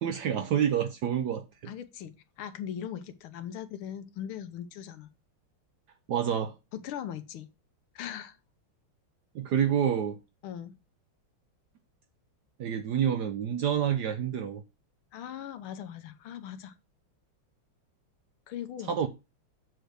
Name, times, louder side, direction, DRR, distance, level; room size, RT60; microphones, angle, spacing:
voice 1, 0.0-1.7 6.1-6.5 9.3-10.2 12.6-14.6 18.9-19.1, right 9 dB, 75° right, 1.0 m, -28 dB
voice 2, 1.7-5.1 6.7-7.5 8.0-8.4 10.4-10.7 15.1-16.7 18.5-18.9, left 9 dB, 85° left, 1.7 m, -39 dB
7.7 x 3.3 x 6.3 m
omnidirectional pair, 2.3 m